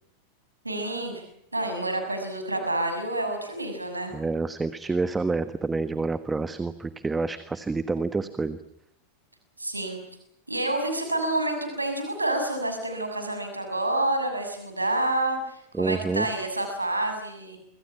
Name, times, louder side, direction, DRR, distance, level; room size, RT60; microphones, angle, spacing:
voice 1, 0.6-1.2 1.5-4.1 9.6-10.0 10.5-17.6, right 1 dB, 85° right, 6 dB, 6.7 m, -28 dB
voice 2, 4.1-8.6 15.7-16.3, right 3 dB, 10° right, 13 dB, 1.4 m, -28 dB
27.5 x 26.0 x 5.9 m, 0.74 s
figure-of-eight pair, 90°, 0 cm